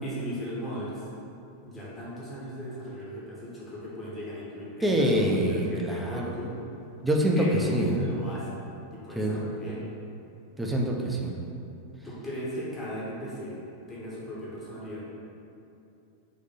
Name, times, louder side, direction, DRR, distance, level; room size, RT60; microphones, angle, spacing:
voice 1, 0.0-1.0 1.6-6.5 7.3-8.6 8.9-9.8 12.0-13.6 13.9-15.0, equal, 15° left, -7 dB, 1.0 m, -38 dB
voice 2, 4.8-6.3 7.0-8.1 9.2-9.4 10.6-11.3, right 1 dB, 5° right, -1 dB, 0.5 m, -25 dB
3.9 x 2.6 x 4.1 m, 2.7 s
figure-of-eight pair, 90°, 0 cm